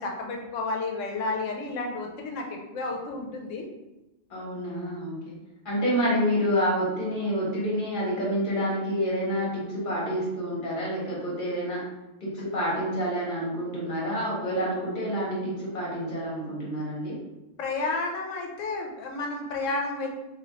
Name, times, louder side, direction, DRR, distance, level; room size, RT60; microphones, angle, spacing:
voice 1, 0.0-3.7 17.6-20.1, left 3 dB, 80° left, 1 dB, 1.0 m, -31 dB
voice 2, 4.3-5.3 5.6-11.8 12.2-17.2, equal, 40° left, -5 dB, 1.2 m, -28 dB
3.0 x 2.6 x 2.8 m, 0.99 s
omnidirectional pair, 1.3 m